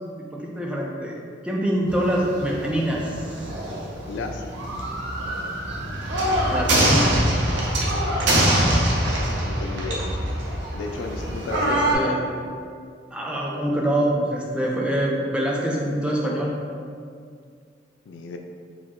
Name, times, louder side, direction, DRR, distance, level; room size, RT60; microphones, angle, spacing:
voice 1, 0.3-1.2 1.4-3.0 6.5-7.2 11.7-12.2 13.1-16.5, right 1 dB, 5° right, -3 dB, 0.4 m, -25 dB
sound 1, 1.9-11.9, right 1 dB, 75° right, 0.7 m, -24 dB
voice 2, 4.1-4.4 8.3-10.1 10.7-12.2 18.1-18.4, left 3 dB, 80° left, 4 dB, 0.4 m, -34 dB
4.8 x 2.1 x 3.6 m, 2.2 s
head